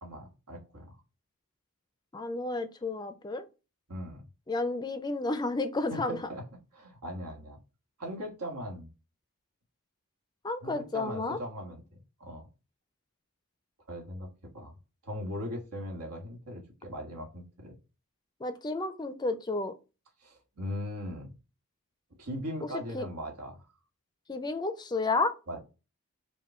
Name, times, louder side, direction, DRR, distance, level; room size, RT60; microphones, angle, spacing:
voice 1, 0.0-1.0 3.9-4.2 5.9-6.4 6.7-7.6 8.0-8.9 10.6-11.8 12.2-12.5 13.9-14.7 15.0-17.7 20.2-21.3 22.2-23.7 25.5-25.6, equal, 85° right, 1.5 m, -39 dB
voice 2, 2.1-3.5 4.5-6.2 10.4-11.4 18.4-19.7 22.9-23.1 24.3-25.6, left 3 dB, 20° left, 0.4 m, -31 dB
5.3 x 2.2 x 4.2 m
head